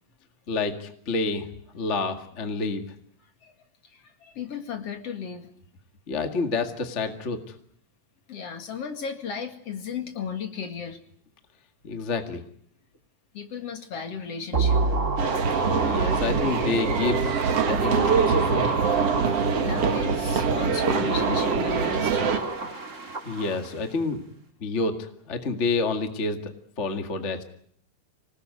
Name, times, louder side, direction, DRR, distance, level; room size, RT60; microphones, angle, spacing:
voice 1, 0.5-1.5 1.7-2.8 6.1-7.4 11.8-12.4 15.8-17.3 17.6-18.6 23.2-24.2 24.6-27.4, left 3 dB, 30° left, 6 dB, 1.5 m, -28 dB
voice 2, 3.8-5.5 8.3-11.0 13.3-15.6 19.5-22.5, left 6 dB, 50° left, 6 dB, 2.9 m, -35 dB
sound 1, 14.5-20.0 20.6-23.9 24.1-24.2, right 3 dB, 25° right, 2.0 m, -29 dB
sound 2, 15.2-22.4, right 5 dB, 50° right, 2.6 m, -24 dB
26.5 x 19.5 x 9.5 m, 0.66 s
omnidirectional pair, 4.0 m